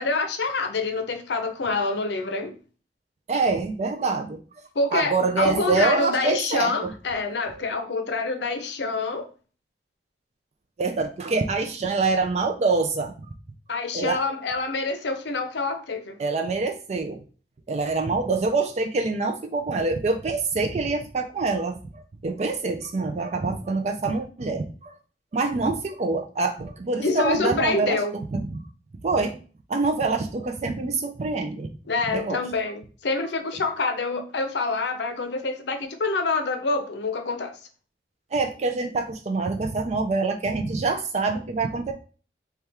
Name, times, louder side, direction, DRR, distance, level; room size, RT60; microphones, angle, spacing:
voice 1, 0.0-2.5 4.7-9.3 13.7-16.2 27.0-28.1 31.9-37.5, left 3 dB, 75° left, 8 dB, 0.6 m, -26 dB
voice 2, 3.3-4.4 4.9-6.9 7.4-7.7 10.8-13.3 13.9-14.2 16.2-17.2 17.7-25.0 25.3-28.0 28.3-28.6 29.0-29.4 29.7-31.7 32.1-32.4 38.3-41.9, right 3 dB, 40° right, 5 dB, 0.4 m, -25 dB
3.4 x 2.3 x 4.2 m, 0.38 s
head